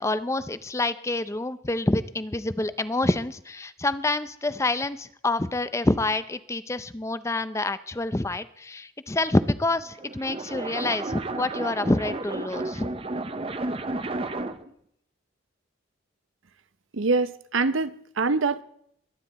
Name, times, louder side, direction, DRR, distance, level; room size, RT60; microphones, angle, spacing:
voice 1, 0.0-12.9, left 2 dB, 15° left, 0.5 m, -27 dB
sound 1, 9.8-14.7, right 2 dB, 30° right, 0.7 m, -32 dB
voice 2, 16.9-18.6, right 3 dB, 75° right, 0.7 m, -24 dB
21.5 x 9.7 x 4.2 m
head